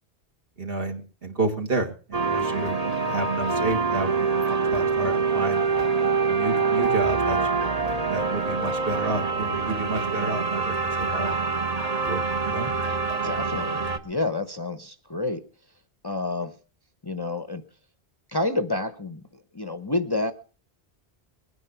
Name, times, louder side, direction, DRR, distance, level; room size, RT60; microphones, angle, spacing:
voice 1, 0.6-5.6 6.3-7.6 8.1-11.4 12.0-12.7, right 2 dB, 60° right, 3 dB, 2.4 m, -30 dB
sound 1, 2.1-14.0, right 4 dB, 35° right, 1.2 m, -25 dB
voice 2, 13.2-15.5 16.0-16.5 17.0-17.6 18.3-19.2 19.5-20.3, left 2 dB, 25° left, 7 dB, 0.7 m, -29 dB
22.0 x 9.6 x 4.5 m, 0.38 s
omnidirectional pair, 1.1 m